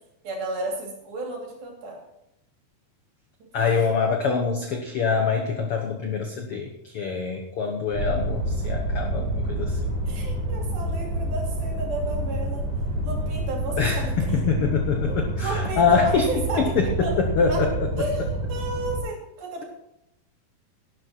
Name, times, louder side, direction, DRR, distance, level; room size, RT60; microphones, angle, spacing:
voice 1, 0.2-2.0 10.1-12.7 13.0-14.4 15.1-16.7 17.0-17.2 17.5-17.6 18.0-19.7, right 2 dB, 80° right, 0 dB, 4.9 m, -32 dB
voice 2, 3.5-9.9 13.8-16.3 16.6-17.9, left 5 dB, 75° left, 4 dB, 1.3 m, -25 dB
sound 1, 7.9-19.0, right 1 dB, 60° right, 6.1 m, -28 dB
11.5 x 11.5 x 4.4 m, 0.80 s
omnidirectional pair, 4.2 m